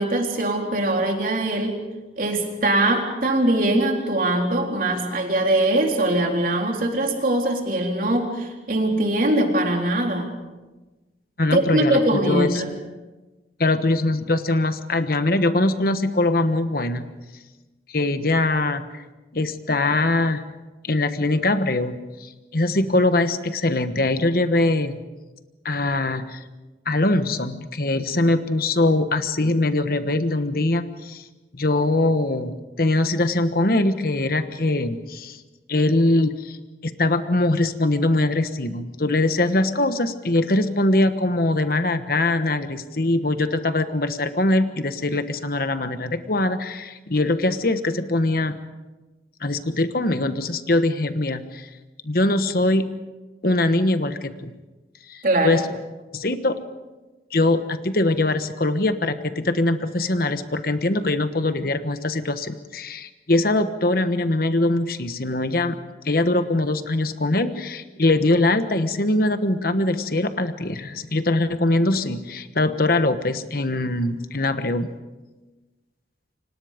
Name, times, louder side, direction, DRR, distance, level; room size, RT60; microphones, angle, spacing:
voice 1, 0.0-1.8 2.2-10.3 11.5-12.7 55.2-55.6, right 1 dB, 50° right, 2 dB, 3.9 m, -22 dB
voice 2, 11.4-12.6 13.6-17.1 17.9-19.0 19.3-20.4 20.8-25.0 25.6-26.4 26.8-31.2 31.5-35.4 35.7-36.6 36.8-48.6 49.4-51.7 52.0-52.9 53.4-54.5 55.1-55.6 56.1-56.6 57.3-65.7 66.0-74.9, left 2 dB, 55° left, 9 dB, 1.3 m, -22 dB
29.5 x 26.0 x 5.2 m, 1.2 s
head